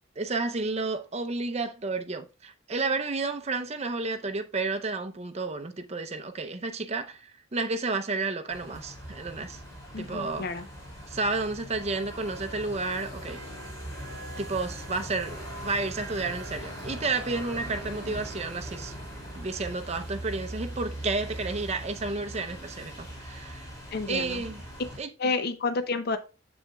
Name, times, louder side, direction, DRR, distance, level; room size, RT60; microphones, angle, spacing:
voice 1, 0.2-9.6 10.0-10.5 11.1-13.4 14.4-18.9 19.4-23.7 24.1-24.7 25.0-25.3, right 3 dB, 30° right, 0.6 m, -31 dB
sound 1, 8.5-25.0, equal, 15° left, 2.5 m, -40 dB
voice 2, 9.9-10.6 23.9-24.4 25.2-26.2, left 4 dB, 50° left, 0.5 m, -30 dB
7.1 x 7.1 x 2.3 m
head